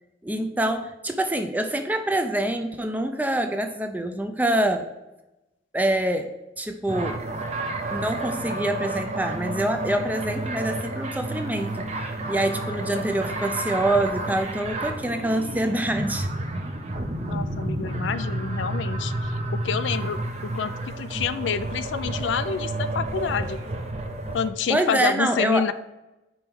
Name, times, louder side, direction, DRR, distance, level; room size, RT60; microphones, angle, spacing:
voice 1, 0.2-4.9 5.7-7.2 7.9-16.3 24.7-25.7, right 1 dB, 10° right, 6 dB, 0.5 m, -26 dB
sound 1, 6.9-24.5, right 2 dB, 35° right, 0.8 m, -30 dB
voice 2, 17.3-19.1 19.5-23.6 24.3-25.7, left 6 dB, 80° left, 13 dB, 0.4 m, -28 dB
5.4 x 4.5 x 6.1 m, 0.98 s
head